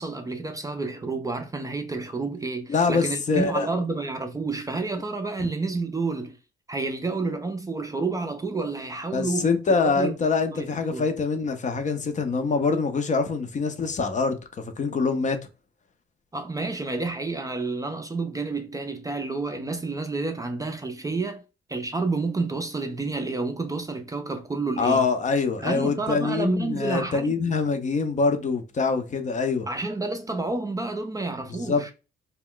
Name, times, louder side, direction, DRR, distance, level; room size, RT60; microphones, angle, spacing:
voice 1, 0.0-6.4 6.7-9.5 9.9-10.1 10.5-11.1 16.3-21.4 21.7-25.0 25.6-27.3 29.7-31.9, right 3 dB, 15° right, 0.4 m, -29 dB
voice 2, 2.7-3.7 5.4-5.5 9.1-14.4 14.8-15.4 24.8-29.7 31.5-31.9, left 4 dB, 40° left, 0.5 m, -24 dB
2.2 x 2.1 x 3.7 m
cardioid pair, 90°, 20 cm